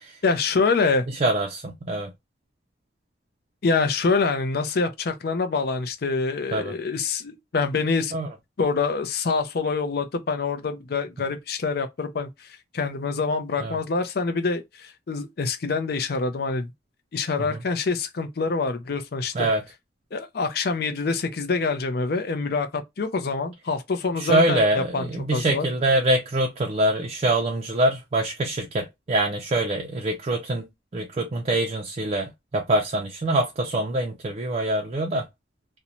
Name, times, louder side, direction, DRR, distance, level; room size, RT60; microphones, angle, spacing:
voice 1, 0.2-1.1 3.6-8.1 8.6-12.5 12.7-16.7 17.1-19.5 20.1-25.7, left 4 dB, 60° left, 0.5 m, -26 dB
voice 2, 1.2-2.1 6.5-6.7 8.1-8.3 13.6-13.8 17.5-17.6 19.3-19.6 24.1-30.7 30.9-35.3, right 1 dB, 35° right, 0.4 m, -24 dB
2.6 x 2.1 x 2.8 m
head